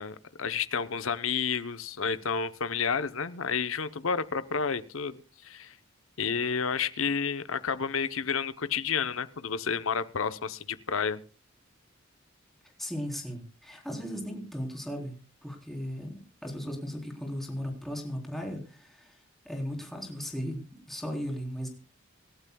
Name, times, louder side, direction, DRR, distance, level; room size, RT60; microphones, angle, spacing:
voice 1, 0.0-5.7 6.2-11.2, left 6 dB, 75° left, 12 dB, 0.9 m, -30 dB
voice 2, 12.8-15.1 15.4-21.7, equal, ahead, 1 dB, 3.8 m, -37 dB
26.5 x 12.5 x 2.3 m, 0.34 s
head